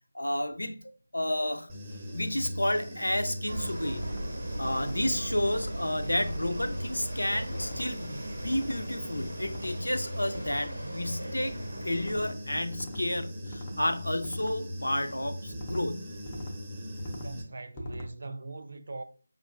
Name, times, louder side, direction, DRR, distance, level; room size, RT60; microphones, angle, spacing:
voice 1, 0.1-0.8 1.1-1.7 2.1-4.1 4.6-16.2, left 1 dB, 75° left, 0.5 m, -31 dB
Human voice / Buzz, 1.7-17.4, equal, 15° right, 0.7 m, -40 dB
sound 1, 3.5-12.3, right 1 dB, 75° right, 0.7 m, -39 dB
sound 2, 4.0-4.2 4.7-5.0 5.4-5.7 6.2-6.5 7.5-7.9 8.4-8.8 9.4-9.8 10.3-10.8 12.0-12.3 12.7-13.0 13.5-13.8 14.2-14.6 15.5-15.8 16.3-16.6 17.0-17.3 17.8-18.1, left 1 dB, 20° left, 0.4 m, -42 dB
voice 2, 17.1-19.0, right 3 dB, 45° right, 0.4 m, -41 dB
5.2 x 2.4 x 2.3 m
figure-of-eight pair, 160°, 0 cm